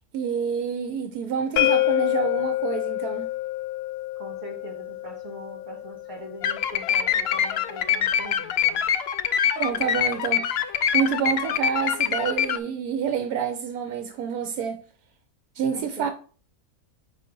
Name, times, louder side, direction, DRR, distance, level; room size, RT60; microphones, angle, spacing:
voice 1, 0.1-3.3 9.6-10.7 10.9-14.8 15.5-16.1, right 7 dB, 80° right, 1.1 m, -28 dB
sound 1, 1.6-7.4, left 16 dB, 85° left, 1.1 m, -28 dB
voice 2, 4.2-8.8 15.7-16.1, right 1 dB, 35° right, 2.3 m, -42 dB
sound 2, 6.4-12.6, left 8 dB, 70° left, 0.6 m, -24 dB
5.5 x 3.9 x 5.2 m
omnidirectional pair, 1.6 m